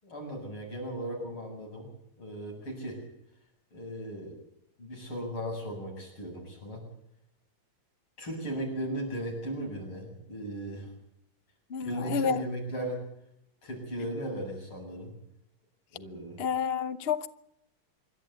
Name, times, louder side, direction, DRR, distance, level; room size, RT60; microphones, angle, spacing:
voice 1, 0.0-1.9 2.2-3.0 3.7-4.4 4.8-6.8 8.2-10.9 11.8-13.0 13.6-15.1 15.9-16.4, right 1 dB, 80° left, 8.7 m, -37 dB
voice 2, 11.7-12.4 16.4-17.3, left 7 dB, 50° left, 0.7 m, -29 dB
26.5 x 13.0 x 8.3 m
omnidirectional pair, 2.3 m